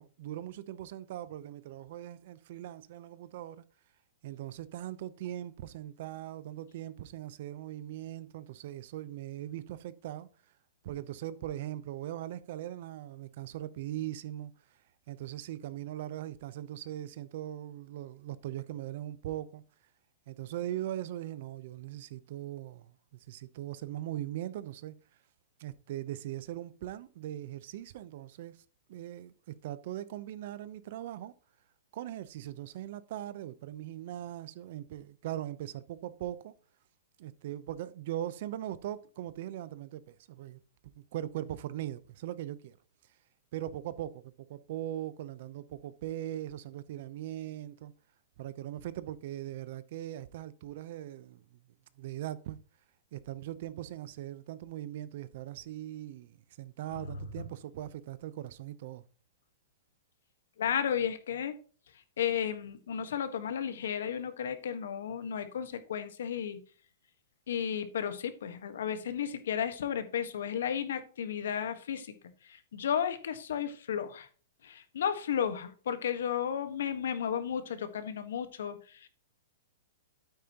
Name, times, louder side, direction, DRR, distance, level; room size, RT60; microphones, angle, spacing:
voice 1, 0.0-3.6 4.2-10.3 10.8-14.5 15.1-19.6 20.3-24.9 25.6-28.6 28.9-31.3 31.9-36.5 37.2-42.8 43.5-47.9 48.4-51.6 52.0-52.6 53.1-59.0, right 12 dB, 55° right, 0.7 m, -40 dB
voice 2, 60.6-61.6 62.2-66.6 67.5-72.1 72.4-74.3 74.6-79.1, left 8 dB, 80° left, 1.4 m, -33 dB
9.1 x 8.7 x 2.9 m
hypercardioid pair, 150°, 0 cm